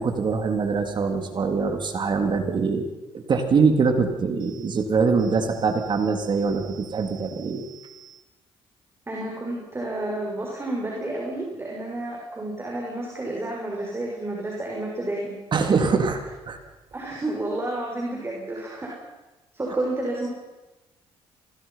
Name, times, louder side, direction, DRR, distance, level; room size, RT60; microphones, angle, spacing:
voice 1, 0.0-8.1 15.5-16.6, right 5 dB, 50° right, 5 dB, 3.5 m, -23 dB
voice 2, 9.1-15.3 16.9-18.9 19.5-20.3, right 1 dB, 25° right, -2 dB, 6.7 m, -30 dB
26.5 x 21.0 x 5.9 m, 1.1 s
cardioid pair, 75°, 10 cm